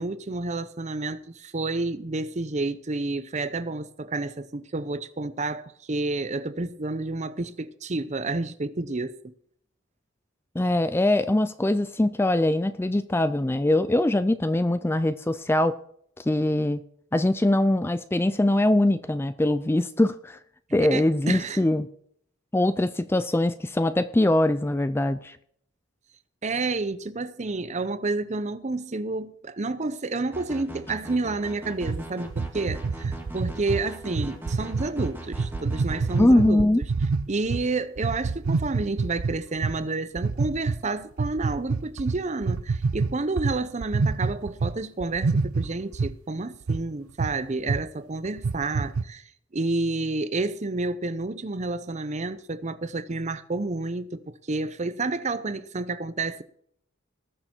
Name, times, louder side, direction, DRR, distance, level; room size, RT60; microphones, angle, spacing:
voice 1, 0.0-9.2 20.9-21.6 26.4-36.7 37.3-56.4, right 3 dB, 35° right, 0.6 m, -30 dB
voice 2, 10.6-15.8 16.2-16.8 17.1-20.4 20.7-21.9 22.5-25.4 36.2-36.8, left 1 dB, 10° left, 0.3 m, -22 dB
sound 1, 30.3-36.2, right 1 dB, 10° right, 2.0 m, -40 dB
sound 2, 31.8-37.6 38.0-39.8 40.2-40.8 41.2-44.7 45.0-46.2 46.7-46.8 47.2-47.4 47.7-47.8 48.3-49.0, right 4 dB, 80° right, 0.6 m, -27 dB
19.5 x 6.6 x 4.4 m
head